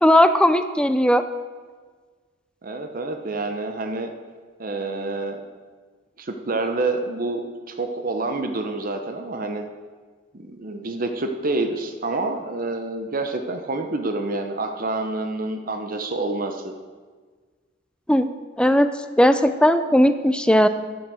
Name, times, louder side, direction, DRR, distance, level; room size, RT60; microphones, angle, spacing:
voice 1, 0.0-1.2 18.1-18.3 18.6-18.9 19.2-20.7, equal, 5° left, 10 dB, 0.5 m, -17 dB
voice 2, 2.6-4.1 4.6-5.4 6.2-9.6 10.3-16.7, right 2 dB, 45° right, 5 dB, 0.9 m, -28 dB
12.0 x 9.3 x 6.3 m, 1.5 s
head